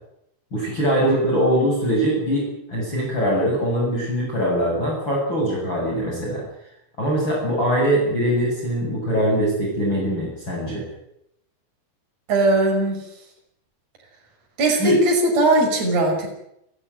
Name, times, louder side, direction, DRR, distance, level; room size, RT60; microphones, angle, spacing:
voice 1, 0.5-6.4 7.0-10.9 14.7-15.0, equal, 25° left, -3 dB, 7.8 m, -22 dB
voice 2, 12.3-13.0 14.6-16.3, right 1 dB, 40° right, 1 dB, 6.4 m, -19 dB
29.5 x 14.5 x 9.2 m, 0.80 s
omnidirectional pair, 4.9 m